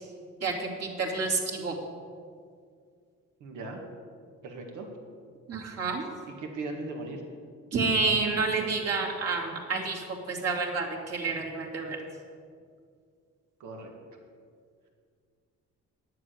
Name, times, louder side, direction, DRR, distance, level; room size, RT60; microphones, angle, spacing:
voice 1, 0.4-1.8 5.5-6.1 7.7-12.0, right 4 dB, 55° right, -3 dB, 2.7 m, -29 dB
voice 2, 3.4-3.8 4.4-4.9 6.4-7.2 13.6-13.9, right 3 dB, 80° right, 2 dB, 1.9 m, -38 dB
10.0 x 7.5 x 7.9 m, 2.2 s
cardioid pair, 90°, 30 cm